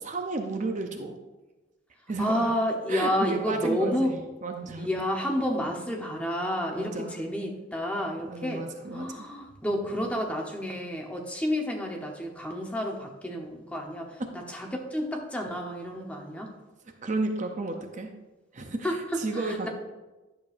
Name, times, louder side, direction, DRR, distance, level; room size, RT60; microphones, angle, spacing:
voice 1, 0.0-1.2 2.1-2.5 2.9-4.9 6.8-7.1 8.2-9.3 17.0-18.1 18.5-19.7, right 3 dB, 40° right, 4 dB, 0.6 m, -33 dB
voice 2, 2.2-4.2 4.8-8.7 8.9-16.5 18.8-19.7, equal, 5° left, 0 dB, 0.9 m, -30 dB
10.5 x 6.8 x 2.5 m, 1.1 s
head